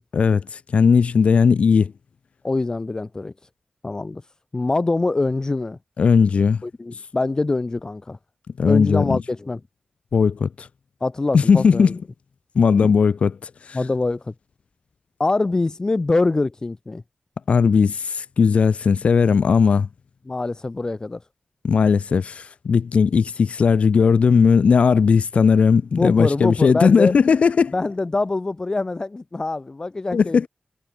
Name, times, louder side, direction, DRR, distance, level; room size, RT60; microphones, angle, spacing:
voice 1, 0.1-1.9 6.0-6.6 8.6-9.2 10.1-10.7 11.3-12.0 12.6-13.8 17.5-19.9 21.6-27.7 30.1-30.5, left 5 dB, 85° left, 0.5 m, -17 dB
voice 2, 2.4-3.3 3.8-4.2 4.5-5.8 6.6-8.2 8.6-9.6 11.0-11.9 13.7-14.3 15.2-17.0 20.3-21.2 25.9-27.1 27.7-30.5, left 3 dB, 35° left, 0.7 m, -24 dB
wide cardioid pair, 95°, 2 cm